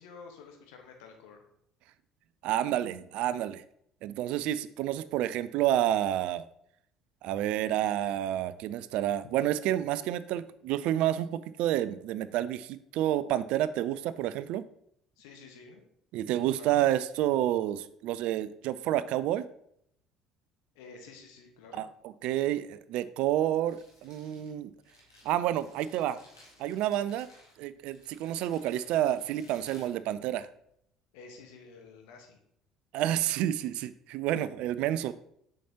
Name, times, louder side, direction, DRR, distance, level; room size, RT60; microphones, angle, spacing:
voice 1, 0.0-1.5 15.2-15.8 16.5-16.8 20.7-21.8 31.1-32.4, left 4 dB, 65° left, 3 dB, 1.2 m, -50 dB
voice 2, 2.4-3.6 4.0-6.4 7.2-14.6 16.1-19.5 21.7-24.7 25.3-26.2 26.6-27.3 27.6-30.5 32.9-35.1, right 12 dB, 55° right, 15 dB, 0.3 m, -29 dB
Crumpling crinkling, 23.5-30.7, left 1 dB, 85° left, 1.6 m, -59 dB
7.0 x 5.7 x 2.8 m, 0.71 s
figure-of-eight pair, 55°, 2 cm